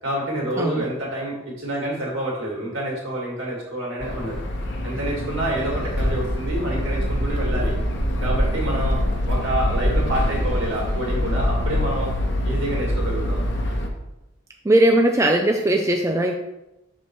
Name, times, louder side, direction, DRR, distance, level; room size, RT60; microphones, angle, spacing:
voice 1, 0.0-4.4 4.8-7.8 8.2-12.1 12.4-13.4, right 1 dB, 70° right, -3 dB, 2.4 m, -28 dB
sound 1, 4.0-13.9, equal, 55° left, 1.0 m, -24 dB
voice 2, 14.6-16.3, right 1 dB, 15° right, 3 dB, 0.4 m, -19 dB
6.6 x 4.3 x 4.7 m, 0.93 s
head